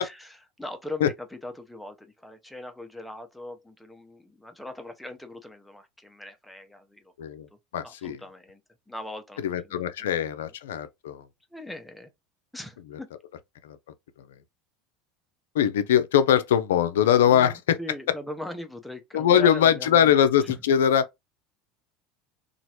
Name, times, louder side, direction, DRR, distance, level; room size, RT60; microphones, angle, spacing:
voice 1, 0.0-7.1 7.8-8.6 8.9-10.1 11.5-12.1 12.5-13.1 17.3-20.1 20.4-20.6, left 1 dB, 5° left, 0.7 m, -40 dB
voice 2, 7.7-8.2 9.4-11.3 13.6-13.8 15.5-17.8 19.1-21.3, left 9 dB, 80° left, 0.4 m, -22 dB
2.9 x 2.4 x 2.9 m
hypercardioid pair, 80°, 0 cm